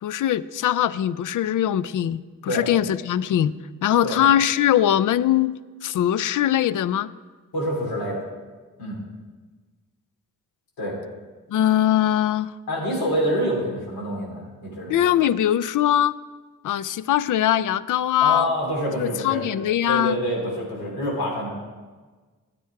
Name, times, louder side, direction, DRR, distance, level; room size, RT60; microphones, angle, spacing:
voice 1, 0.0-3.5 3.8-7.1 11.5-12.5 14.9-16.1 16.6-18.5 19.0-20.2, left 11 dB, 60° left, 17 dB, 0.5 m, -21 dB
voice 2, 7.5-8.2 8.8-9.0 10.8-11.0 12.7-15.1 18.2-19.4 19.9-21.5, equal, 75° left, -3 dB, 3.3 m, -26 dB
9.3 x 8.7 x 4.7 m, 1.4 s
supercardioid pair, 55°, 36 cm